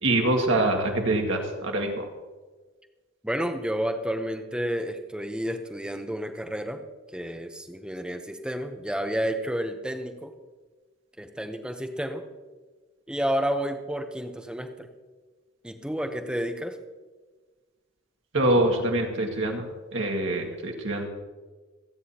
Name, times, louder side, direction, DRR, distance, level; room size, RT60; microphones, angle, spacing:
voice 1, 0.0-2.1 18.3-19.6 19.9-21.1, right 1 dB, 65° right, 2 dB, 1.9 m, -24 dB
voice 2, 3.2-6.8 7.1-10.3 11.2-12.2 13.1-14.9 15.6-16.8, equal, 5° right, 6 dB, 0.8 m, -30 dB
26.5 x 9.5 x 2.9 m, 1.3 s
head